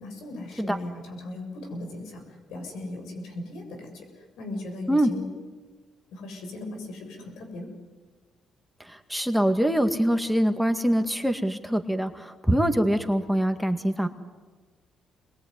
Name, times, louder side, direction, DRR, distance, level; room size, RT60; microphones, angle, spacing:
voice 1, 0.0-5.3 6.1-7.7, left 2 dB, 85° left, 4 dB, 7.2 m, -38 dB
voice 2, 8.8-14.1, equal, ahead, 6 dB, 2.1 m, -24 dB
27.5 x 22.0 x 9.8 m, 1.4 s
cardioid pair, 90°, 0 cm